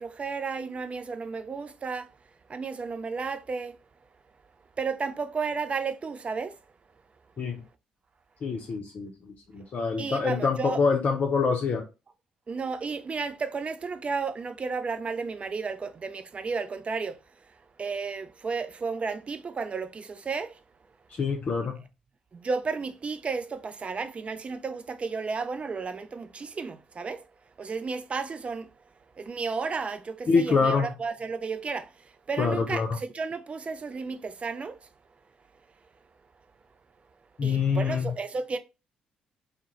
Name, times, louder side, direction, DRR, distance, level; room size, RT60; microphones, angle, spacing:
voice 1, 0.0-2.1 2.5-3.8 4.8-6.6 10.0-10.8 12.5-17.2 17.8-20.6 22.3-27.2 27.6-28.7 29.2-31.9 32.3-34.9 37.4-38.6, right 4 dB, 35° right, 0.3 m, -33 dB
voice 2, 8.4-11.8 21.1-21.8 30.3-30.9 32.4-32.9 37.4-38.1, left 5 dB, 50° left, 0.5 m, -26 dB
2.2 x 2.0 x 3.0 m
hypercardioid pair, 45°, 3 cm